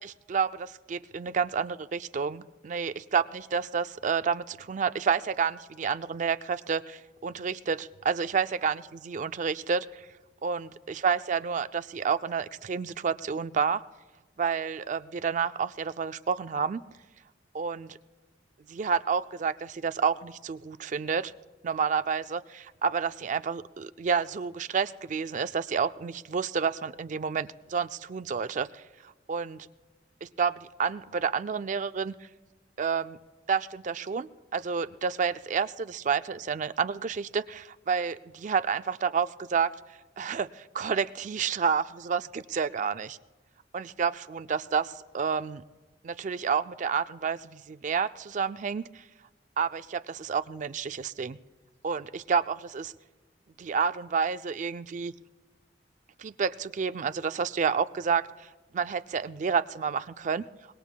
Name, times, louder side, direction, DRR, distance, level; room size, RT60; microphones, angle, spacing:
voice 1, 0.0-10.0 10.4-13.8 14.4-16.8 17.5-18.0 18.7-21.3 21.6-28.8 29.3-29.7 30.2-32.1 32.8-33.2 33.5-39.7 40.2-43.2 43.7-45.6 46.0-49.0 49.6-51.4 51.8-52.9 53.6-55.1 56.2-58.5 58.7-60.4, right 6 dB, 45° right, 12 dB, 0.4 m, -29 dB
25.0 x 20.0 x 2.2 m, 1.2 s
head